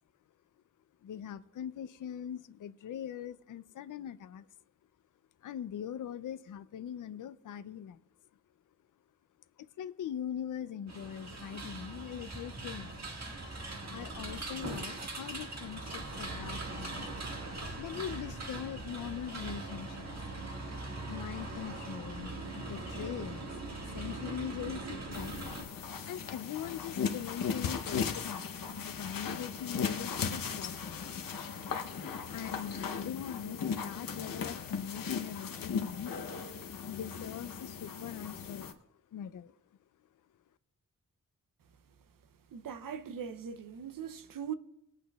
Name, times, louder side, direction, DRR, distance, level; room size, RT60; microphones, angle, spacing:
voice 1, 1.0-4.5 5.4-8.0 9.6-13.2 13.9-17.1 17.8-20.2 21.0-23.5 23.8-25.4 26.0-31.3 32.3-36.1 36.9-38.8 39.1-39.6, left 9 dB, 70° left, 0.5 m, -42 dB
sound 1, 10.9-25.6, right 2 dB, 55° right, 1.7 m, -41 dB
sound 2, 25.1-38.7, left 6 dB, 90° left, 0.8 m, -37 dB
voice 2, 42.5-44.5, right 7 dB, 85° right, 0.6 m, -40 dB
21.0 x 8.3 x 2.3 m
wide cardioid pair, 125°, 33 cm